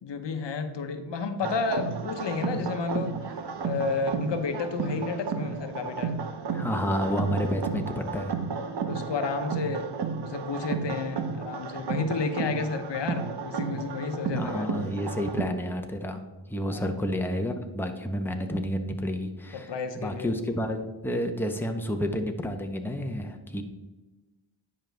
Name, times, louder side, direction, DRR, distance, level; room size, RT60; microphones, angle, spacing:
voice 1, 0.0-6.2 8.6-9.9 10.2-14.7 16.7-16.9 19.5-20.3, left 4 dB, 65° left, 8 dB, 0.9 m, -31 dB
sound 1, 1.4-15.4, right 5 dB, 60° right, 0.9 m, -33 dB
voice 2, 6.5-8.4 14.3-16.2 16.5-23.6, equal, 5° left, 4 dB, 1.0 m, -30 dB
10.0 x 5.4 x 3.4 m, 1.2 s
cardioid pair, 70°, 46 cm